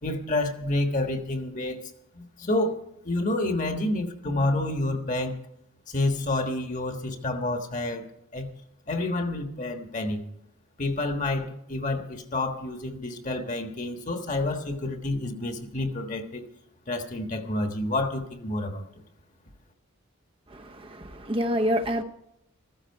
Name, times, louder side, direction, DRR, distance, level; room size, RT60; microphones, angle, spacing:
voice 1, 0.0-2.8 3.0-5.4 5.9-8.0 8.3-8.5 8.9-10.2 10.8-16.5 16.9-19.0, left 2 dB, 35° left, 5 dB, 1.4 m, -29 dB
voice 2, 20.5-22.0, equal, 25° right, 5 dB, 0.7 m, -27 dB
14.5 x 14.0 x 4.7 m, 0.80 s
head